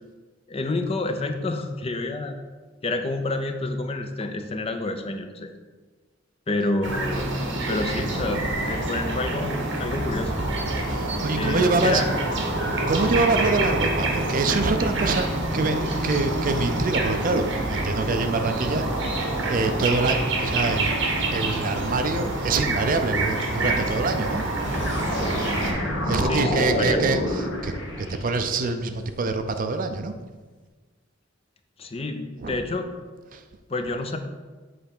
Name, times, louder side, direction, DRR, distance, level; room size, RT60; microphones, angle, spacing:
voice 1, 0.5-2.4 2.8-5.5 6.5-7.3 7.7-10.3 11.4-12.1 26.2-27.0 31.8-32.9 33.7-34.2, left 2 dB, 30° left, 6 dB, 0.5 m, -28 dB
sound 1, 6.8-25.7, right 2 dB, 65° right, 1.3 m, -27 dB
voice 2, 8.1-8.6 10.9-12.0 12.9-19.1 19.4-21.0 21.3-24.4 26.1-30.1 32.4-32.6 33.3-33.4, right 3 dB, 45° right, 8 dB, 0.5 m, -25 dB
sound 2, 24.6-28.6, equal, 65° left, 1.5 m, -28 dB
7.8 x 3.4 x 5.9 m, 1.4 s
head